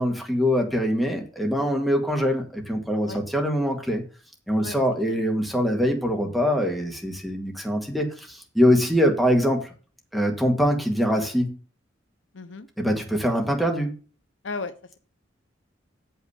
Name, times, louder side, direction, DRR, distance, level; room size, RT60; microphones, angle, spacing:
voice 1, 0.0-4.0 4.5-9.7 10.1-11.6 12.8-13.9, equal, ahead, 2 dB, 1.9 m, -23 dB
voice 2, 12.3-12.7 14.4-15.0, left 3 dB, 75° left, 12 dB, 0.8 m, -35 dB
7.7 x 5.7 x 6.9 m, 0.38 s
head